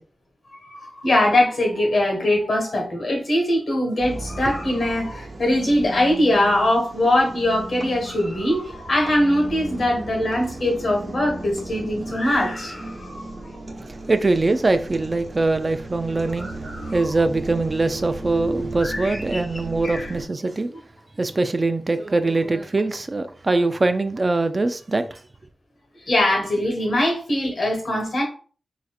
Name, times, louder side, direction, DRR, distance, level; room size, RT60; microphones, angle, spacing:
voice 1, 0.5-13.3 16.4-17.1 18.8-20.1 25.9-28.2, left 1 dB, 70° left, 1.4 m, -22 dB
sound 1, 4.0-20.3, right 2 dB, 65° right, 1.1 m, -35 dB
voice 2, 13.8-20.7 21.2-25.1, right 2 dB, 45° right, 0.4 m, -23 dB
3.9 x 2.5 x 2.4 m
cardioid pair, 40°, 0 cm